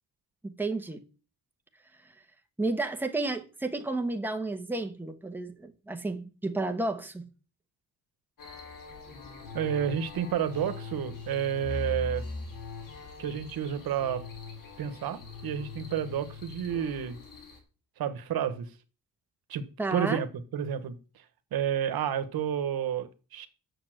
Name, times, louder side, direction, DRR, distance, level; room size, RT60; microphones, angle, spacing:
voice 1, 0.4-1.0 2.6-7.3 19.8-20.2, right 2 dB, 5° right, 1.2 m, -32 dB
sound 1, 8.4-17.6, left 4 dB, 65° left, 3.0 m, -41 dB
voice 2, 9.5-12.2 13.2-14.2 14.8-17.2 18.0-18.7 19.5-19.6 19.9-20.3 20.5-21.2 21.5-23.5, right 9 dB, 85° right, 1.2 m, -30 dB
7.0 x 6.8 x 7.7 m
wide cardioid pair, 130°, 35 cm